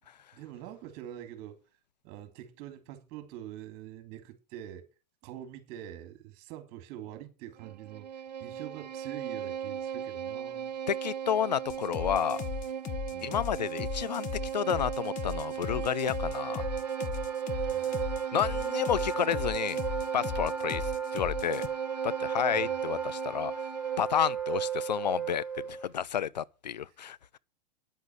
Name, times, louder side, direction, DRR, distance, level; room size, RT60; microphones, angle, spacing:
voice 1, 0.3-1.6 2.0-4.9 5.2-8.1 8.4-10.7 13.1-13.4 17.6-18.4 22.5-22.7, right 12 dB, 50° right, 3.3 m, -45 dB
Bowed string instrument, 7.6-24.2, right 8 dB, 90° right, 0.6 m, -38 dB
voice 2, 10.9-12.4 13.2-16.7 18.3-19.8 20.1-20.8 21.1-21.7 22.0-23.5 24.0-27.4, left 9 dB, 90° left, 0.6 m, -31 dB
sound 1, 11.7-21.7, left 8 dB, 40° left, 1.2 m, -37 dB
Wind instrument woodwind instrument, 16.0-25.9, right 7 dB, 5° right, 5.0 m, -35 dB
10.0 x 8.2 x 7.6 m
hypercardioid pair, 100°, 21 cm